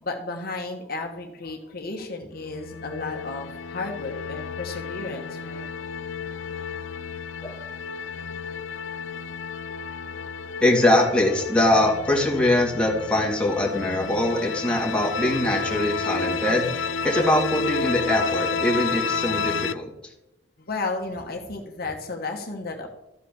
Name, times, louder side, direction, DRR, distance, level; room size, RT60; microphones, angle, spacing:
voice 1, 0.0-5.6 20.6-23.0, left 3 dB, 55° left, 3 dB, 1.3 m, -33 dB
sound 1, 2.4-19.7, left 5 dB, 80° left, 0.5 m, -31 dB
voice 2, 10.6-19.9, left 1 dB, 5° left, -2 dB, 2.5 m, -22 dB
13.5 x 5.0 x 7.0 m, 0.91 s
head